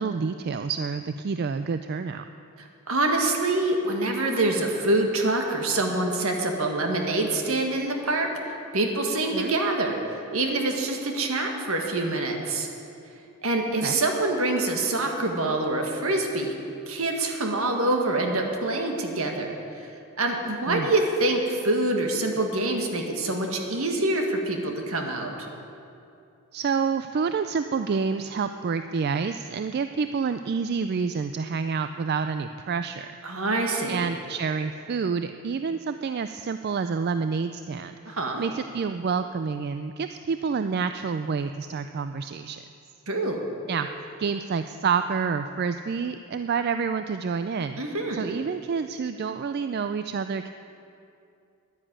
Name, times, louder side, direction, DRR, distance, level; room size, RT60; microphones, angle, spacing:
voice 1, 0.0-2.2 9.3-9.5 13.8-14.0 20.7-20.9 26.5-33.1 33.9-38.0 38.4-42.6 43.7-47.8 48.1-50.5, right 5 dB, 45° right, 9 dB, 0.3 m, -28 dB
voice 2, 2.6-8.3 8.7-10.0 10.3-12.7 13.4-16.5 16.9-25.5 33.2-34.1 38.0-38.4 43.1-43.4 47.8-48.3, right 2 dB, 70° right, 3 dB, 1.7 m, -26 dB
10.5 x 10.0 x 8.8 m, 2.6 s
head